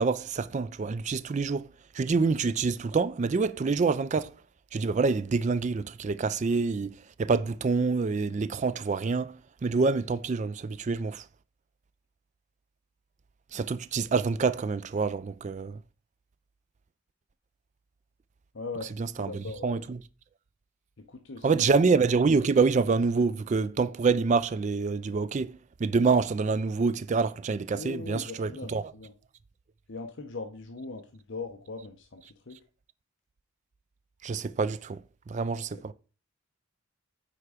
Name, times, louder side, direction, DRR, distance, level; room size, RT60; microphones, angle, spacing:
voice 1, 0.0-1.7 1.9-4.3 4.7-11.3 13.5-15.8 19.0-20.0 21.4-28.8 34.2-35.0 35.3-35.9, right 4 dB, 35° right, 0.3 m, -26 dB
voice 2, 18.5-19.9 21.0-21.8 27.7-29.1 29.9-32.6 35.5-35.9, left 3 dB, 55° left, 0.8 m, -40 dB
9.3 x 3.5 x 4.9 m
head